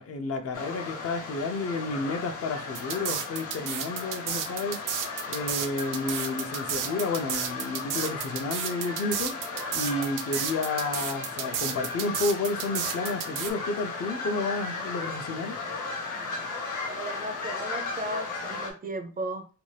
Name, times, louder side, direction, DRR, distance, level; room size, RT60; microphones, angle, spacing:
voice 1, 0.0-4.8 5.3-9.3 9.7-15.6, left 3 dB, 50° left, 0.5 m, -31 dB
sound 1, 0.5-18.7, left 4 dB, 70° left, 0.9 m, -36 dB
sound 2, 2.7-13.5, right 8 dB, 85° right, 0.5 m, -32 dB
voice 2, 16.9-19.5, right 1 dB, 30° right, 0.4 m, -35 dB
2.6 x 2.3 x 3.2 m
wide cardioid pair, 135°, 31 cm